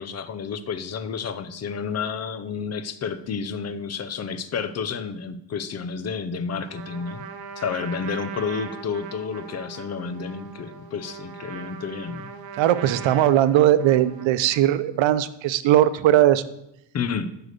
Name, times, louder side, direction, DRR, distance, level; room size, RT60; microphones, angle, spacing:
voice 1, 0.0-7.3 7.6-12.3 16.9-17.3, left 6 dB, 35° left, 12 dB, 0.6 m, -30 dB
Trumpet, 6.7-14.8, right 6 dB, 55° right, 0.9 m, -40 dB
voice 2, 12.6-16.4, right 12 dB, 90° right, 14 dB, 0.7 m, -19 dB
9.2 x 5.0 x 6.5 m, 0.84 s
cardioid pair, 180°, 44 cm